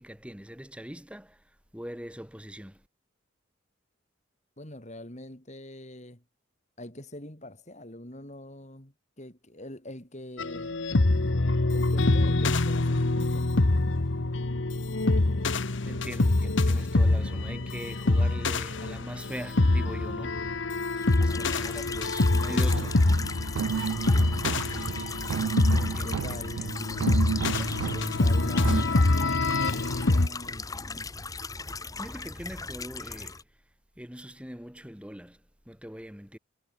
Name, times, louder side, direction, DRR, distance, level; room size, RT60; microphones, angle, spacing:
voice 1, 0.0-2.9 15.8-20.5 20.9-23.0 25.8-26.8 32.0-33.6 34.0-36.4, equal, 5° right, 2.4 m, -42 dB
voice 2, 4.6-6.2 6.8-10.8 11.7-13.6 21.1-22.2 24.4-24.9 25.9-27.0 28.0-31.3, left 1 dB, 35° left, 3.6 m, -44 dB
sound 1, 10.4-30.3, left 2 dB, 65° left, 1.1 m, -25 dB
sound 2, 21.0-33.4, left 4 dB, 15° left, 1.1 m, -38 dB
sound 3, 22.7-28.8, right 6 dB, 90° right, 0.4 m, -32 dB
head